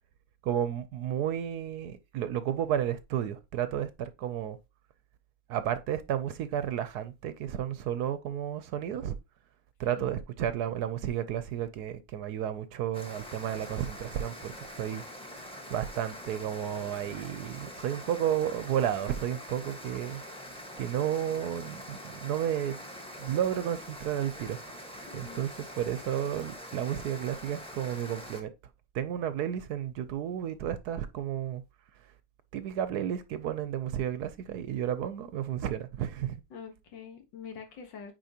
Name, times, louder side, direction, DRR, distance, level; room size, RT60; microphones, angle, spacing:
voice 1, 0.4-4.6 5.5-9.2 9.8-15.0 15.7-22.8 23.2-25.5 25.8-28.5 28.9-31.6 32.5-36.4, right 10 dB, 70° right, 1.1 m, -32 dB
sound 1, 12.9-28.4, equal, 5° left, 1.0 m, -44 dB
voice 2, 25.0-25.4 36.5-38.1, left 6 dB, 80° left, 2.0 m, -45 dB
9.1 x 4.9 x 2.8 m
omnidirectional pair, 1.9 m